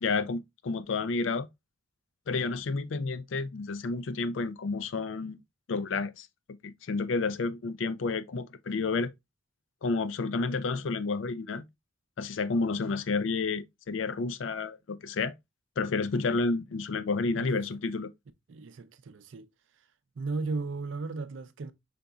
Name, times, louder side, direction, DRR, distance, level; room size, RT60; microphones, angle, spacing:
voice 1, 0.0-1.5 2.3-5.4 5.7-6.3 6.6-9.1 9.8-11.7 12.2-15.3 15.8-18.1, left 4 dB, 80° left, 0.5 m, -30 dB
voice 2, 17.3-17.7 18.5-19.5 20.2-21.7, right 3 dB, 75° right, 0.5 m, -35 dB
5.1 x 3.9 x 2.3 m
head